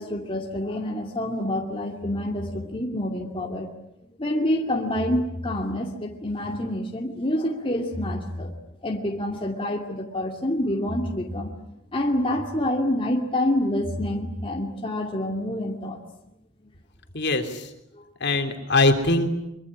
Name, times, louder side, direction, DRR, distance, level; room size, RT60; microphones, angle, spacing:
voice 1, 0.0-3.7 4.0-8.5 8.8-11.5 11.9-16.0 17.9-18.0, left 1 dB, 25° left, 1 dB, 2.4 m, -27 dB
voice 2, 17.1-17.7 18.2-19.3, left 2 dB, 55° left, 6 dB, 3.3 m, -22 dB
24.0 x 24.0 x 9.9 m, 0.84 s
head